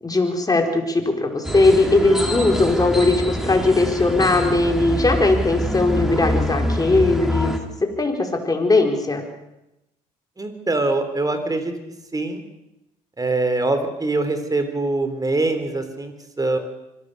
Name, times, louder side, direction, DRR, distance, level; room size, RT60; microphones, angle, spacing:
voice 1, 0.0-7.5 7.8-9.2, left 2 dB, 25° left, 3 dB, 4.7 m, -19 dB
sound 1, 1.4-7.6, equal, ahead, 3.7 m, -25 dB
voice 2, 10.4-11.7 12.1-12.4 13.2-16.6, right 2 dB, 25° right, 8 dB, 3.9 m, -23 dB
25.0 x 18.0 x 6.9 m, 0.91 s
hypercardioid pair, 60°, 16 cm